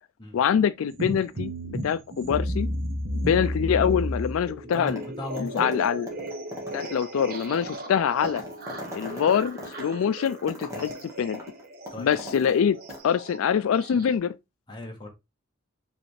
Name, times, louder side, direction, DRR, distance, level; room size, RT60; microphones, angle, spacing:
voice 1, 0.3-2.7 3.1-5.0 5.4-6.1 6.7-8.4 8.9-11.4 12.0-12.8 13.0-14.4, left 8 dB, 80° left, 0.3 m, -25 dB
sound 1, 0.9-14.2, equal, 45° right, 0.8 m, -34 dB
sound 2, 4.7-5.1 5.4-12.6 12.9-13.0, equal, 15° right, 1.3 m, -40 dB
voice 2, 4.8-5.8 10.7-10.9 11.9-12.1 14.7-15.1, left 1 dB, 20° left, 1.2 m, -37 dB
5.1 x 3.3 x 3.2 m
head